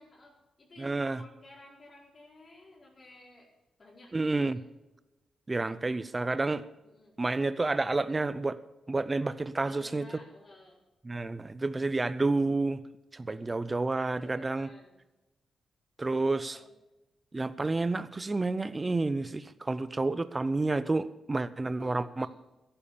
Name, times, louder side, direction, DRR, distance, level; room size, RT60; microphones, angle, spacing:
voice 1, 0.0-3.5 3.8-4.4 6.8-7.1 9.6-10.8 13.2-13.4 14.0-15.0 16.3-16.7 21.8-22.3, left 2 dB, 40° left, -3 dB, 4.4 m, -54 dB
voice 2, 0.8-1.2 4.1-4.6 5.5-6.6 7.2-8.6 8.9-10.0 11.0-12.8 13.1-14.7 16.0-16.6 17.3-22.3, right 3 dB, 25° right, 14 dB, 0.6 m, -30 dB
14.0 x 11.5 x 7.0 m, 1.0 s
cardioid pair, 105°, 0 cm